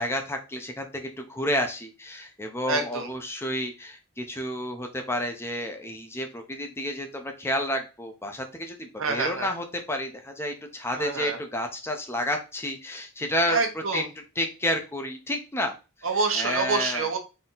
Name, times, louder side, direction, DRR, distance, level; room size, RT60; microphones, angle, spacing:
voice 1, 0.0-13.6 13.9-14.0 14.4-15.7 16.4-17.1, left 1 dB, 10° left, 4 dB, 0.6 m, -30 dB
voice 2, 2.7-3.1 9.0-9.5 11.0-11.4 13.5-14.1 16.0-17.2, right 4 dB, 75° right, 5 dB, 1.0 m, -27 dB
4.1 x 2.8 x 3.9 m, 0.30 s
head